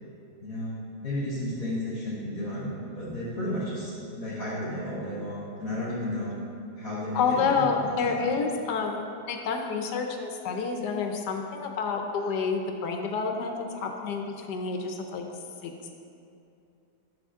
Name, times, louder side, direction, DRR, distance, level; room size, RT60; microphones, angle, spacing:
voice 1, 0.4-6.3 6.8-8.1, left 1 dB, 60° left, -12 dB, 3.1 m, -33 dB
voice 2, 7.1-15.2 15.6-15.9, left 5 dB, 85° left, 3 dB, 1.4 m, -29 dB
13.0 x 6.9 x 3.6 m, 2.6 s
omnidirectional pair, 1.7 m